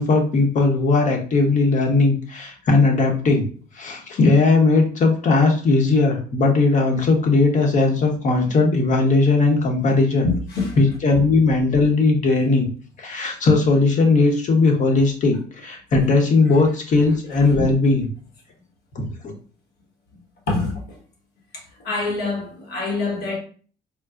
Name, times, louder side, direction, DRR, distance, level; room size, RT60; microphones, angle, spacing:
voice 1, 0.0-3.5 3.8-10.3 10.8-12.7 13.0-18.1 18.9-19.3, left 3 dB, 45° left, 0.9 m, -18 dB
voice 2, 10.2-10.8 17.6-17.7 20.5-20.8 21.8-23.4, left 3 dB, 70° left, 1.2 m, -25 dB
4.4 x 2.1 x 2.4 m
cardioid pair, 110°, 17 cm